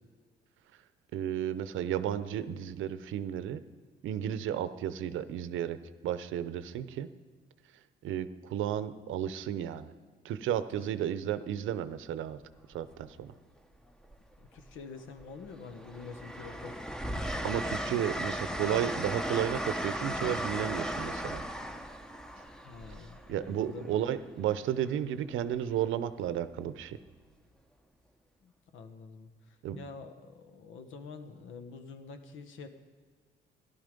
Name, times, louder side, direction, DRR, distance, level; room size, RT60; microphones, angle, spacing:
voice 1, 1.1-3.6 4.0-5.8 6.0-7.1 8.0-9.9 10.2-12.4 12.7-13.3 17.4-21.4 23.3-27.0 29.6-29.8, right 10 dB, 85° right, 13 dB, 0.7 m, -33 dB
Train, 12.4-12.7 14.0-14.8 15.2-23.9 25.5-25.8, equal, 5° left, 0.9 m, -36 dB
voice 2, 14.4-16.8 22.6-24.1 28.4-32.7, left 4 dB, 85° left, 8 dB, 1.3 m, -47 dB
13.5 x 11.5 x 5.2 m, 1.5 s
cardioid pair, 90°, 20 cm